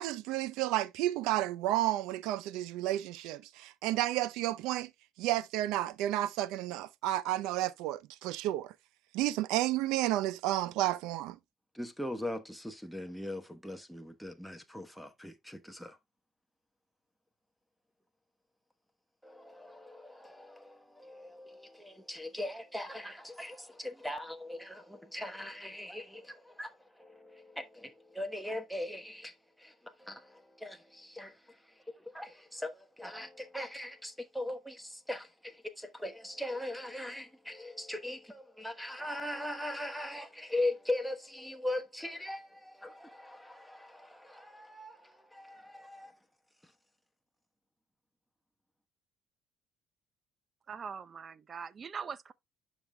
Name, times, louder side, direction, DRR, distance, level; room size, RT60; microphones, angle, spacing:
voice 1, 0.0-4.9 5.2-8.7 9.1-11.4, right 14 dB, 85° right, 0.6 m, -31 dB
voice 2, 11.7-16.0 19.2-46.1 46.6-46.7, left 1 dB, ahead, 1.0 m, -40 dB
voice 3, 50.7-52.3, right 6 dB, 35° right, 0.6 m, -42 dB
11.0 x 5.2 x 2.2 m
cardioid pair, 105°, 0 cm